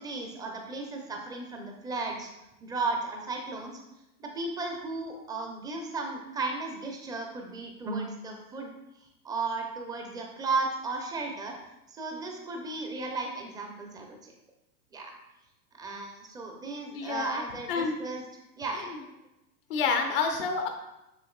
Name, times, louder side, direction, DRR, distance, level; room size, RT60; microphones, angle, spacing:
voice 1, 0.0-2.3 2.6-3.8 4.2-8.7 9.0-11.5 11.9-14.3 14.9-15.1 15.7-18.2 18.6-18.9, right 3 dB, 10° right, 2 dB, 0.7 m, -35 dB
voice 2, 16.9-17.4 17.7-17.9 19.7-20.7, left 5 dB, 35° left, 5 dB, 0.7 m, -28 dB
7.3 x 6.4 x 2.4 m, 0.94 s
figure-of-eight pair, 100°, 47 cm